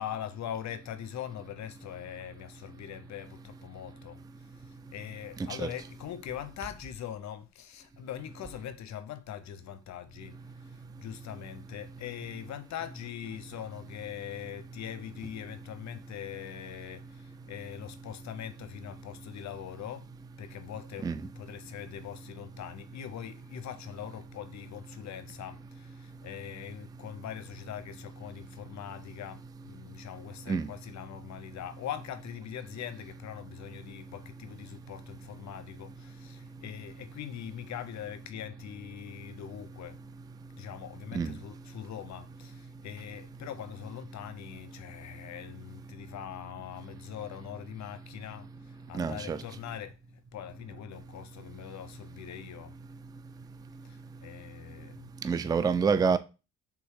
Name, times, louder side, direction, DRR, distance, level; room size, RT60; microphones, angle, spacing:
voice 1, 0.0-4.2 4.5-20.1 20.4-40.0 40.5-50.0 50.3-52.7 53.8-55.4, left 10 dB, 65° left, 0.6 m, -42 dB
voice 2, 48.9-49.4 55.2-56.2, right 5 dB, 15° right, 0.3 m, -27 dB
3.5 x 3.1 x 4.7 m
cardioid pair, 90°, 30 cm